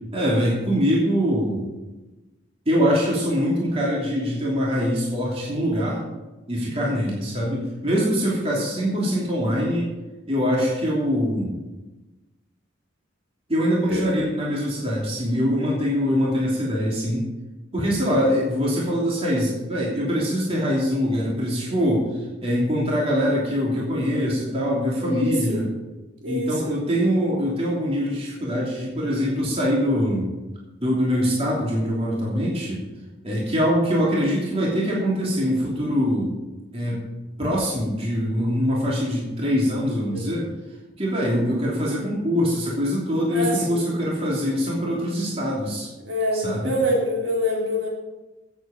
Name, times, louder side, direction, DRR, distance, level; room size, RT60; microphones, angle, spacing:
voice 1, 0.1-1.7 2.7-6.0 6.5-9.9 10.3-11.6 13.5-17.2 17.7-22.1 22.4-25.7 26.3-30.3 30.8-32.8 33.2-36.3 36.7-37.0 37.4-40.4 41.0-45.9 46.3-46.8, equal, 30° right, -4 dB, 2.9 m, -23 dB
voice 2, 25.0-25.6 26.2-26.7 40.1-40.2 43.3-43.8 46.1-47.9, equal, 65° right, -4 dB, 4.3 m, -25 dB
15.5 x 8.3 x 5.2 m, 1.1 s
head